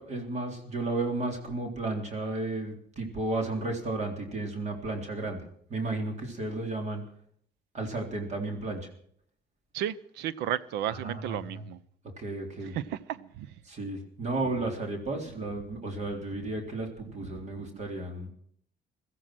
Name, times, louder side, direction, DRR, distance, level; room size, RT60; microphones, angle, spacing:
voice 1, 0.0-5.4 5.7-7.0 7.7-8.9 10.9-11.4 12.2-12.8 13.7-18.3, right 2 dB, 45° right, 3 dB, 3.7 m, -33 dB
voice 2, 9.7-11.8 12.6-13.5, right 11 dB, 85° right, 19 dB, 0.8 m, -33 dB
16.5 x 14.0 x 6.1 m, 0.64 s
cardioid pair, 110°, 17 cm